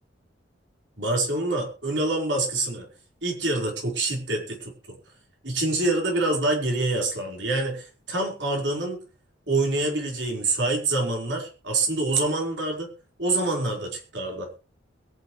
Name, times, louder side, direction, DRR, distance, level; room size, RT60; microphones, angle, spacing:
voice 1, 1.0-2.9 3.2-4.7 5.4-9.0 9.5-12.9 13.2-14.5, right 2 dB, 65° right, 0 dB, 4.7 m, -26 dB
22.5 x 9.6 x 3.3 m, 0.35 s
head